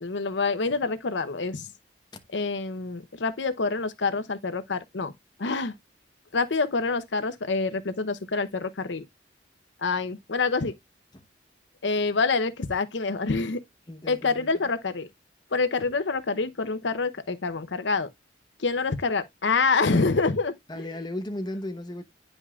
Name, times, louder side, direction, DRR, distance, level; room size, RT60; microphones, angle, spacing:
voice 1, 0.0-1.7 2.3-5.1 5.4-5.7 6.3-9.0 9.8-10.7 11.8-13.6 14.1-15.1 15.5-18.1 18.6-20.9, left 4 dB, 85° left, 0.8 m, -26 dB
voice 2, 13.9-14.5 20.7-22.0, left 1 dB, 25° left, 1.1 m, -35 dB
9.7 x 5.3 x 2.4 m
head